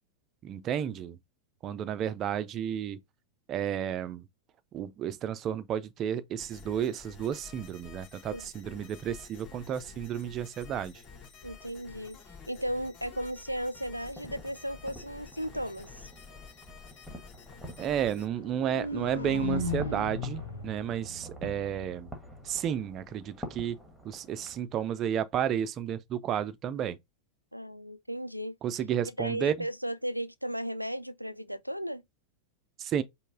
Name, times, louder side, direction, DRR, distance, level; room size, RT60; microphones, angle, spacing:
voice 1, 0.4-1.2 1.6-3.0 3.5-4.2 4.7-10.9 17.8-22.1 22.4-23.8 24.0-27.0 28.6-29.7 32.8-33.0, right 9 dB, 30° right, 0.5 m, -32 dB
sound 1, 6.4-18.2, left 5 dB, 35° left, 2.5 m, -50 dB
voice 2, 11.4-12.2 12.5-16.1 27.5-28.6 29.2-32.0, equal, 90° right, 0.4 m, -35 dB
sound 2, 13.7-24.6, right 1 dB, ahead, 1.4 m, -48 dB
sound 3, 18.3-22.4, left 3 dB, 80° left, 0.8 m, -36 dB
5.2 x 2.2 x 3.6 m
figure-of-eight pair, 90°, 0 cm